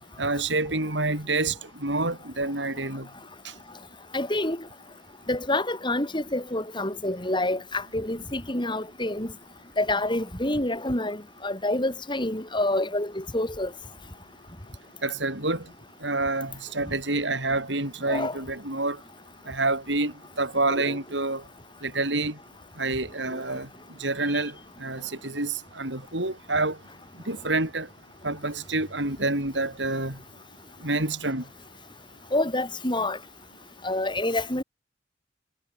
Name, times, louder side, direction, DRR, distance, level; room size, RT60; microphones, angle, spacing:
voice 1, 0.2-3.1 3.4-3.5 15.0-15.7 16.0-19.0 19.5-21.4 21.8-22.4 22.8-26.8 27.3-27.9 28.2-30.2 30.8-31.5, right 2 dB, 80° right, 7.4 m, -28 dB
voice 2, 4.1-4.6 5.3-9.3 9.8-13.7 18.1-18.4 20.7-21.0 32.3-33.2 33.8-34.6, left 1 dB, 25° left, 6.7 m, -27 dB
head